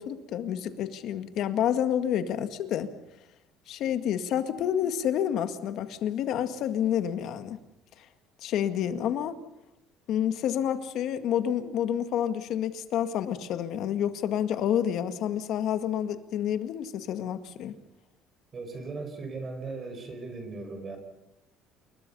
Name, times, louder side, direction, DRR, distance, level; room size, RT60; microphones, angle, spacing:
voice 1, 0.0-2.9 3.7-7.6 8.4-9.4 10.1-17.7, left 10 dB, 55° left, 10 dB, 2.0 m, -29 dB
voice 2, 18.5-21.0, right 3 dB, 25° right, 6 dB, 4.8 m, -38 dB
29.0 x 21.5 x 5.6 m, 0.87 s
cardioid pair, 150°, 0 cm